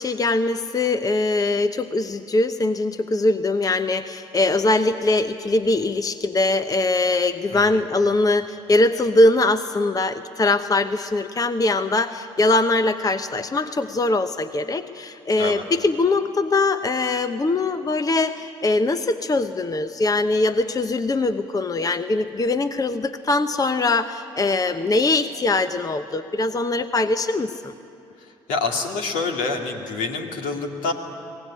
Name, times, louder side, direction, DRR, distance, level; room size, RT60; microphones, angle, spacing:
voice 1, 0.0-27.7, left 2 dB, 25° left, 10 dB, 0.9 m, -22 dB
voice 2, 28.5-30.9, left 3 dB, 70° left, 2 dB, 2.5 m, -27 dB
24.0 x 18.5 x 10.0 m, 2.6 s
hypercardioid pair, 55°, 14 cm